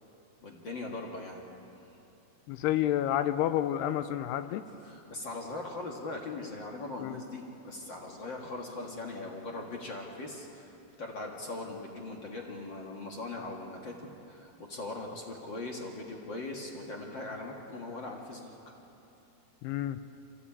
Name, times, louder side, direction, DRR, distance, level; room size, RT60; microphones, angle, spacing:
voice 1, 0.4-1.4 1.8-1.9 4.7-10.7 11.0-18.7, left 2 dB, 55° left, 0 dB, 1.2 m, -40 dB
voice 2, 2.5-4.6 7.0-7.2 19.6-20.0, left 12 dB, 85° left, 12 dB, 2.7 m, -29 dB
25.5 x 15.5 x 8.6 m, 2.9 s
omnidirectional pair, 4.8 m